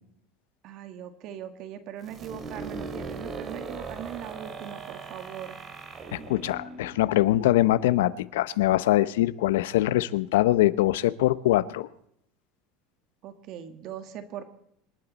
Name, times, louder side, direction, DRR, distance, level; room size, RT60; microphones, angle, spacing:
voice 1, 0.6-5.6 13.2-14.4, right 9 dB, 55° right, 9 dB, 1.7 m, -40 dB
sound 1, 2.0-7.7, right 4 dB, 35° right, 2.4 m, -39 dB
voice 2, 6.1-11.9, left 15 dB, 90° left, 17 dB, 0.7 m, -23 dB
26.0 x 12.0 x 4.1 m, 0.73 s
supercardioid pair, 125°, 0 cm